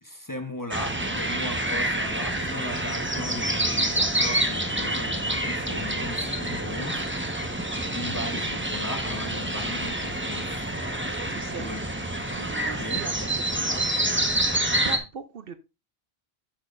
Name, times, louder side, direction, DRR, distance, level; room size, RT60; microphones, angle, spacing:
voice 1, 0.0-7.1 8.0-10.7 11.5-11.8 12.8-13.1, left 1 dB, 20° left, 1.0 m, -37 dB
sound 1, 0.7-15.0, right 1 dB, 10° right, 1.0 m, -27 dB
voice 2, 11.0-11.7 12.3-13.1 13.5-13.8 14.8-15.6, right 6 dB, 60° right, 0.8 m, -39 dB
10.5 x 7.3 x 2.5 m
omnidirectional pair, 1.1 m